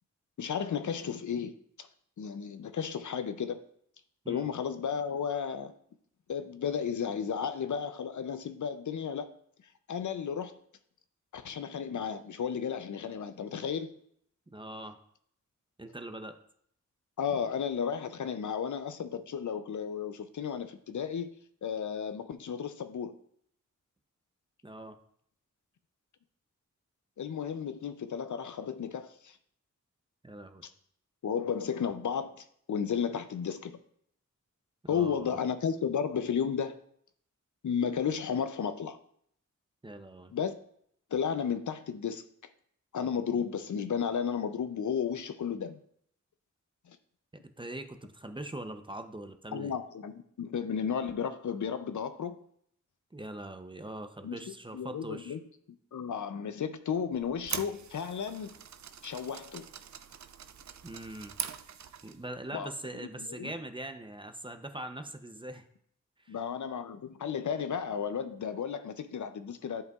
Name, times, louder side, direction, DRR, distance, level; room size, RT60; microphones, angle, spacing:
voice 1, 0.4-1.5 1.8-1.9 2.2-3.6 4.3-5.7 6.3-9.3 9.9-10.5 11.3-13.9 17.2-23.2 27.2-29.4 31.2-33.8 34.9-36.8 37.6-39.0 40.3-40.5 41.1-42.2 42.9-45.8 46.9-47.0 49.5-52.4 54.2-54.4 54.7-55.4 55.9-58.6 59.0-59.7 62.5-62.7 63.2-63.5 66.3-69.8, left 7 dB, 70° left, 0.5 m, -33 dB
voice 2, 14.5-15.0 15.8-16.4 24.6-25.0 30.2-30.6 34.8-35.4 39.8-40.3 47.6-49.7 53.1-55.4 60.8-61.3 62.0-65.6 66.2-66.4, right 1 dB, 15° right, 0.6 m, -42 dB
sound 1, 57.1-62.3, right 8 dB, 65° right, 0.5 m, -42 dB
11.0 x 4.7 x 2.4 m
wide cardioid pair, 75°, 31 cm